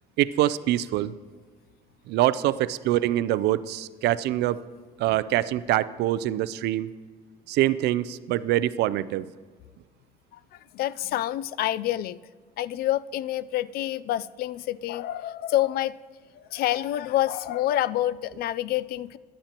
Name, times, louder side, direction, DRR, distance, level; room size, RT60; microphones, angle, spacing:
voice 1, 0.2-1.1 2.1-4.6 5.0-6.9 7.5-9.3, right 14 dB, 80° right, 16 dB, 0.5 m, -24 dB
voice 2, 10.3-12.2 12.6-16.0 16.4-19.2, left 13 dB, 65° left, 19 dB, 0.4 m, -27 dB
16.5 x 11.5 x 2.9 m, 1.4 s
cardioid pair, 110°, 17 cm